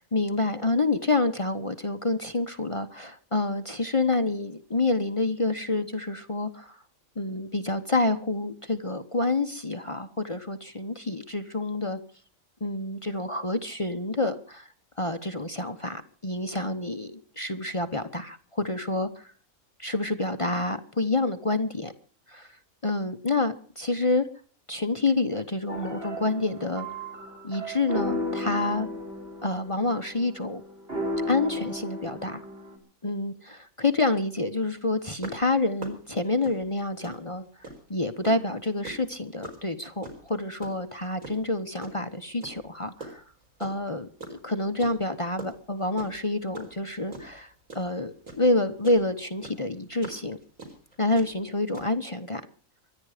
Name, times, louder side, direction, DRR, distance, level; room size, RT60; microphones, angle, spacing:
voice 1, 0.0-6.8 7.2-12.0 12.6-14.7 15.0-19.3 19.8-21.9 22.3-22.5 22.8-24.3 24.7-26.9 27.4-28.9 29.4-30.6 31.3-32.4 33.0-37.4 37.9-43.2 43.6-50.4 51.0-52.4, left 2 dB, 25° left, 7 dB, 1.0 m, -28 dB
sound 1, 25.7-32.8, left 1 dB, 45° right, 4.1 m, -34 dB
sound 2, 35.2-37.9 38.2-42.0 42.4-43.9 44.2-49.0 49.4-51.9, right 2 dB, 70° right, 4.7 m, -42 dB
24.0 x 10.5 x 5.0 m, 0.41 s
omnidirectional pair, 1.4 m